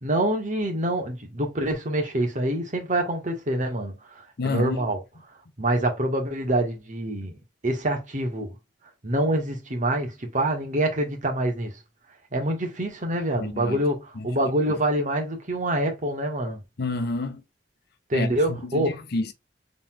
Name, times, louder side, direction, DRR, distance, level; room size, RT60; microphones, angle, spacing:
voice 1, 0.0-5.0 5.6-7.4 7.6-8.5 9.0-11.7 12.3-16.6 18.1-18.9, right 1 dB, 45° right, 1.6 m, -26 dB
voice 2, 4.4-4.8 13.4-13.8 14.1-14.3 16.8-17.4 18.1-19.3, left 3 dB, 60° left, 0.8 m, -29 dB
4.0 x 3.9 x 2.4 m
head